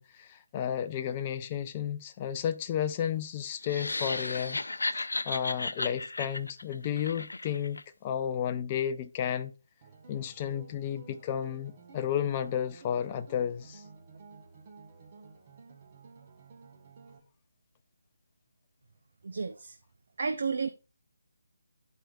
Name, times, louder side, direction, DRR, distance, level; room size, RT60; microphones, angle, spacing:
voice 1, 0.0-4.6 5.2-9.5 10.1-13.8, left 9 dB, 25° left, 0.4 m, -32 dB
sound 1, 3.6-7.8, left 2 dB, 85° left, 0.4 m, -34 dB
sound 2, 9.8-17.2, right 4 dB, 35° right, 1.0 m, -53 dB
voice 2, 19.2-19.8 20.2-20.7, right 5 dB, 60° right, 0.5 m, -31 dB
11.5 x 4.5 x 2.3 m
figure-of-eight pair, 160°, 0 cm